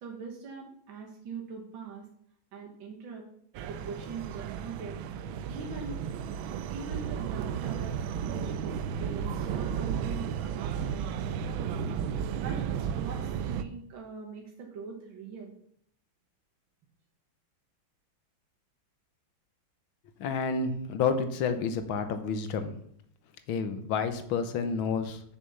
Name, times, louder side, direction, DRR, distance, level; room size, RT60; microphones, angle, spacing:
voice 1, 0.0-2.1 2.5-3.2 3.7-6.0 6.7-15.5, right 5 dB, 70° right, 1 dB, 2.0 m, -42 dB
sound 1, 3.5-13.6, right 8 dB, 90° right, 1.4 m, -33 dB
voice 2, 20.2-22.8 23.5-25.2, left 5 dB, 85° left, 9 dB, 1.8 m, -30 dB
7.3 x 6.7 x 6.9 m, 0.66 s
omnidirectional pair, 2.2 m